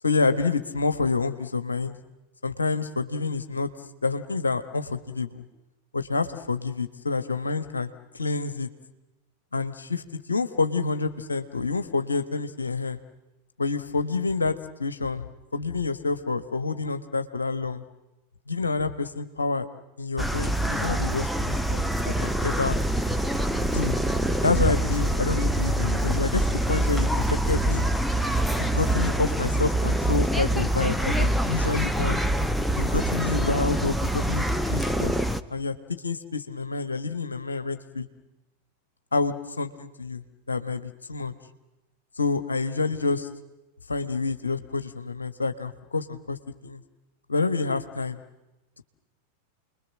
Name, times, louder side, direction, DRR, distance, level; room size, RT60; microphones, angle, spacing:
voice 1, 0.0-2.0 2.4-3.7 4.0-5.4 5.9-7.9 8.2-8.7 9.5-10.0 10.3-13.0 13.6-15.3 15.5-17.8 18.5-19.6 20.0-21.8 22.1-22.8 23.6-23.9 24.4-27.9 28.6-32.2 32.8-35.1 35.5-35.7 36.0-38.1 39.1-40.2 40.5-41.3 42.2-43.3 43.9-46.4 46.6-46.8 47.3-48.2, left 4 dB, 75° left, 10 dB, 1.3 m, -28 dB
sound 1, 20.2-35.4, right 1 dB, ahead, 1.0 m, -25 dB
29.5 x 21.5 x 7.5 m, 1.0 s
figure-of-eight pair, 90°, 0 cm